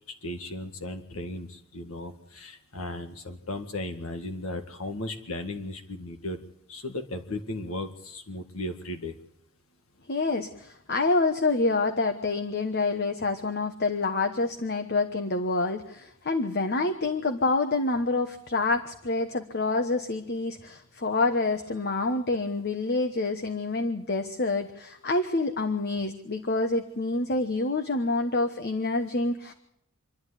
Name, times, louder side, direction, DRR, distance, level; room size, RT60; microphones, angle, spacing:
voice 1, 0.2-6.4 6.7-9.1, left 1 dB, 80° left, 6 dB, 1.9 m, -36 dB
voice 2, 10.1-29.5, left 3 dB, 50° left, 7 dB, 1.2 m, -27 dB
26.5 x 11.5 x 9.9 m, 0.79 s
head